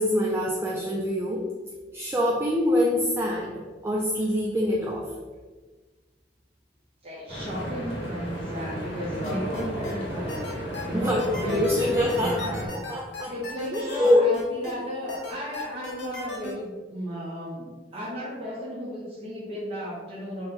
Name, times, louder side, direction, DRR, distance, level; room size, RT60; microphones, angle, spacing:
voice 1, 0.0-1.5 1.9-5.1 10.9-13.3 13.7-14.3, left 1 dB, 15° right, -3 dB, 0.3 m, -25 dB
voice 2, 7.0-10.5 10.8-12.8 13.3-20.5, equal, 35° right, -6 dB, 0.8 m, -35 dB
Stream / Boat Water vehicle, 7.3-12.7, equal, 35° left, 1.1 m, -33 dB
sound 1, 9.2-9.9 10.3-14.7 15.1-16.5, left 3 dB, 85° left, 1.0 m, -37 dB
4.0 x 2.2 x 3.8 m, 1.4 s
head